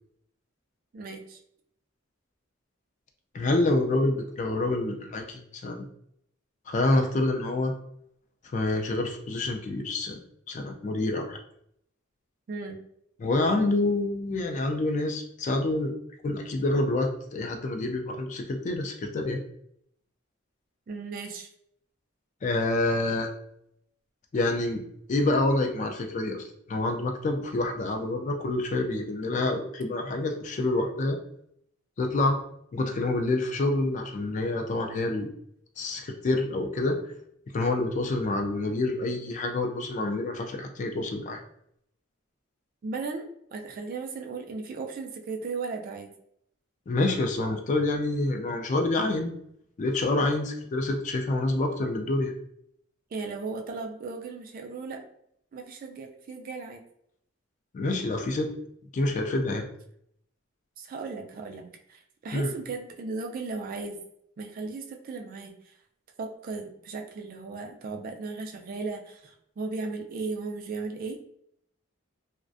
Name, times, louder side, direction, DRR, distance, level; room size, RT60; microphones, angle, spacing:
voice 1, 0.9-1.4 12.5-12.8 20.9-21.5 42.8-46.1 53.1-55.0 55.5-56.8 60.8-64.0 64.4-65.7 66.2-71.2, right 4 dB, 45° right, 3 dB, 0.3 m, -36 dB
voice 2, 3.3-5.9 6.7-7.7 8.5-10.2 10.5-11.4 13.2-15.9 16.2-19.4 22.4-23.3 24.3-24.8 25.1-31.2 32.0-32.4 32.7-35.3 35.8-37.0 37.5-41.4 46.9-49.3 49.8-52.3 57.7-58.5 58.9-59.7 62.3-62.5, left 2 dB, 40° left, 3 dB, 0.3 m, -27 dB
2.4 x 2.1 x 2.5 m, 0.71 s
head